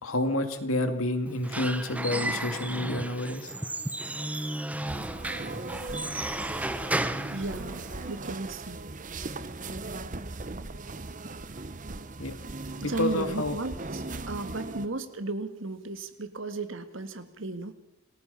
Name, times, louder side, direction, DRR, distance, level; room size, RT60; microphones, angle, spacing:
voice 1, 0.0-3.5 12.2-12.3 12.8-13.5, left 1 dB, 70° left, 7 dB, 2.7 m, -29 dB
Squeak / Wood, 1.3-8.2, right 1 dB, 5° right, 0.8 m, -34 dB
sound 1, 4.8-14.9, right 2 dB, 35° right, 1.0 m, -38 dB
voice 2, 7.3-8.8 12.8-17.7, right 2 dB, 60° right, 10 dB, 1.8 m, -35 dB
28.5 x 19.5 x 5.7 m, 0.86 s
head